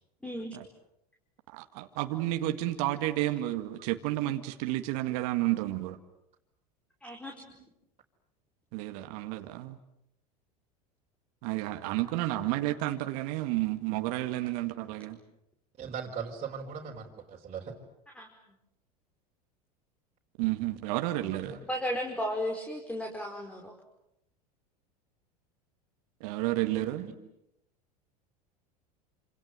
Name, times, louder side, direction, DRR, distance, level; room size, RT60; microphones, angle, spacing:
voice 1, 0.2-0.5 7.0-7.3 18.1-18.3 21.7-23.7, equal, 5° left, 1 dB, 5.0 m, -34 dB
voice 2, 1.5-6.0 8.7-9.8 11.4-15.2 20.4-21.6 26.2-27.1, right 16 dB, 60° right, 7 dB, 2.0 m, -31 dB
voice 3, 7.3-7.6 9.0-9.1 11.9-12.3 14.4-14.5 15.8-17.7 21.4-21.5 26.8-27.1, right 6 dB, 30° right, -3 dB, 4.9 m, -41 dB
28.0 x 27.0 x 7.8 m, 0.81 s
hypercardioid pair, 90°, 20 cm